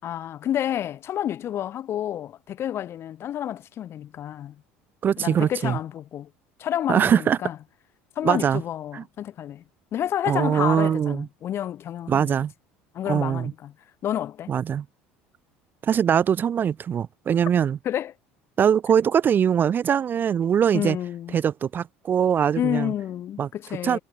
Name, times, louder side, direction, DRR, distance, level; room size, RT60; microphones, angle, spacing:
voice 1, 0.0-4.6 5.2-6.3 6.6-7.6 8.2-9.6 9.9-12.4 12.9-13.7 14.0-14.5 17.8-18.1 20.7-21.4 22.6-24.0, left 11 dB, 50° left, 4.4 m, -29 dB
voice 2, 5.0-5.8 6.9-7.4 8.2-8.6 8.9-9.0 10.3-11.3 12.1-12.5 13.1-13.5 14.5-14.8 15.8-17.8 18.6-21.0 21.3-22.9 23.4-23.5 23.8-24.0, right 8 dB, 35° right, 0.5 m, -22 dB
supercardioid pair, 90°, 5 cm